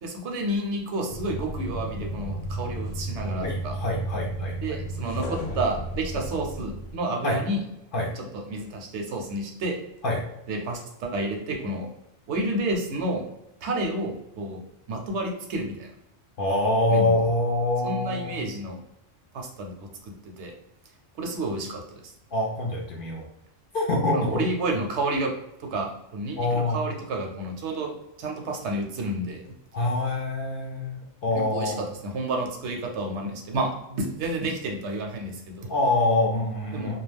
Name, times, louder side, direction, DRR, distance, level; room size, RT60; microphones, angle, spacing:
voice 1, 0.0-3.8 4.6-7.6 8.2-9.8 10.5-11.9 12.3-13.2 13.6-14.6 14.9-15.9 16.9-17.1 17.8-18.8 19.3-20.5 21.2-22.1 24.1-25.3 25.6-29.5 31.3-31.7 32.0-35.7 36.7-36.9, right 1 dB, 75° right, 2 dB, 0.9 m, -30 dB
sound 1, 1.1-7.0, right 1 dB, 85° left, 1.0 m, -33 dB
voice 2, 3.4-4.8 7.2-7.4 7.9-8.1 10.0-10.2 16.4-18.5 22.3-23.2 23.7-24.4 26.4-26.8 29.7-31.8 35.7-37.0, left 2 dB, 60° left, -1 dB, 0.6 m, -25 dB
2.3 x 2.3 x 3.2 m, 0.86 s
omnidirectional pair, 1.3 m